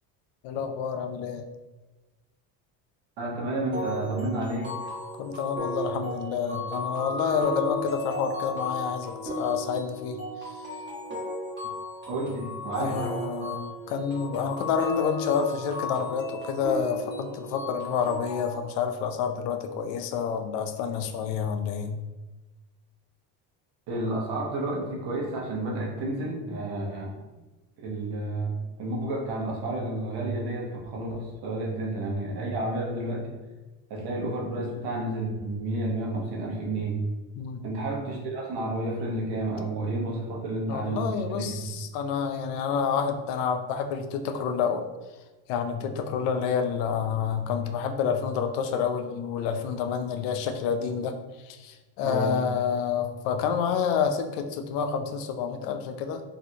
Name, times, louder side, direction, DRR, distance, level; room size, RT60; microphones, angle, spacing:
voice 1, 0.4-1.4 5.2-10.6 11.6-11.7 12.8-21.9 37.4-37.6 40.7-44.8 45.5-51.1 51.4-56.2, left 6 dB, 75° left, 7 dB, 0.5 m, -29 dB
voice 2, 3.2-4.7 12.1-13.0 23.9-27.2 27.8-28.5 28.8-33.3 33.9-37.0 37.6-41.5 52.0-52.4, right 2 dB, 65° right, -2 dB, 1.0 m, -31 dB
sound 1, 3.7-18.5, left 1 dB, 25° right, 1.1 m, -35 dB
3.2 x 2.4 x 2.7 m, 1.2 s
cardioid pair, 110°, 42 cm